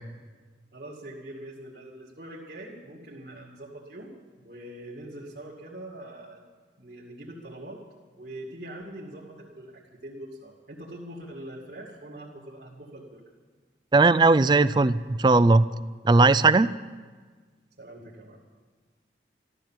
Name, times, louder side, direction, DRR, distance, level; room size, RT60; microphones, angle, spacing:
voice 1, 0.7-4.1 4.4-6.4 6.8-7.8 8.2-13.2 17.8-18.4, right 1 dB, 60° right, -5 dB, 2.2 m, -43 dB
voice 2, 13.9-15.6 16.0-16.7, right 3 dB, 25° right, 15 dB, 0.3 m, -18 dB
13.5 x 13.5 x 7.4 m, 1.5 s
head